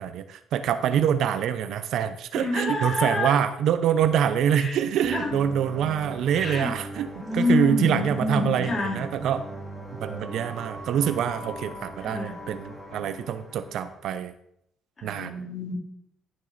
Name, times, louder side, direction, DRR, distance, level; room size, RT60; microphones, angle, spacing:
voice 1, 0.0-7.1 7.3-8.7 9.0-9.4 9.9-14.3 15.0-15.3, right 9 dB, 70° right, 10 dB, 0.6 m, -25 dB
voice 2, 2.3-3.4 4.5-4.7 5.1-5.4 6.3-6.7 7.2-9.0 12.0-12.4 15.0-15.7, left 2 dB, 35° left, -3 dB, 3.8 m, -27 dB
sound 1, 5.0-14.0, equal, 5° left, 2.3 m, -40 dB
12.0 x 6.2 x 4.0 m, 0.74 s
supercardioid pair, 70°, 0 cm